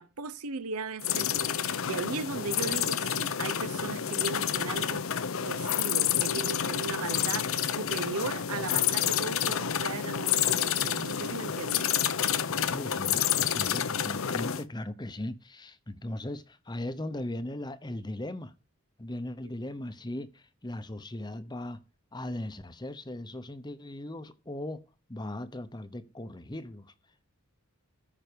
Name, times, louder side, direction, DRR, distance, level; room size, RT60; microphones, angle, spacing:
voice 1, 0.0-11.9, right 4 dB, 80° right, 0.7 m, -37 dB
sound 1, 1.0-14.6, left 9 dB, 65° left, 0.7 m, -29 dB
voice 2, 12.7-18.5 19.0-21.8 22.1-24.8 25.1-26.9, left 1 dB, 20° left, 0.8 m, -38 dB
14.0 x 6.0 x 5.1 m
head